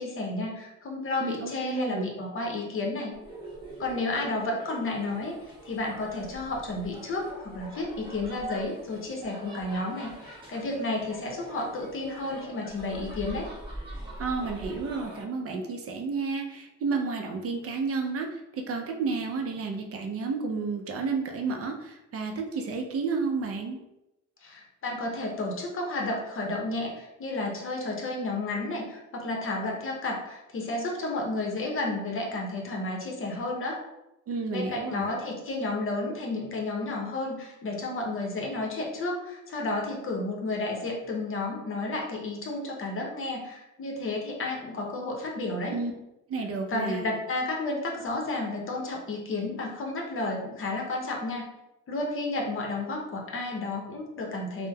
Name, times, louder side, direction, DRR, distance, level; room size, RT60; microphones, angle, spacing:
voice 1, 0.0-3.1 3.8-5.4 5.6-13.5 24.4-33.8 34.5-45.7 46.7-51.5 51.9-54.7, left 2 dB, 45° left, 0 dB, 0.7 m, -32 dB
voice 2, 1.2-2.1 14.2-23.8 34.3-35.1 45.7-45.9 46.3-47.1, right 4 dB, 50° right, 2 dB, 0.5 m, -31 dB
sound 1, 3.1-15.2, right 1 dB, 15° right, 0.9 m, -43 dB
3.1 x 2.0 x 2.2 m, 0.90 s
cardioid pair, 90°, 30 cm